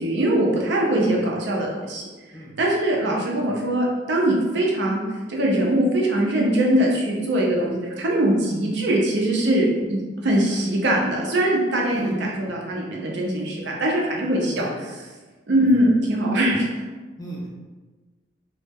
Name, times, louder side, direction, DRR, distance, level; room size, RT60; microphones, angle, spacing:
voice 1, 0.0-2.1 2.6-5.0 5.3-15.1 15.5-16.7, right 1 dB, 60° right, -2 dB, 0.5 m, -22 dB
voice 2, 11.9-12.3 14.5-14.8 15.5-15.8 17.2-17.5, equal, 20° left, -4 dB, 0.4 m, -35 dB
2.1 x 2.0 x 3.4 m, 1.3 s
head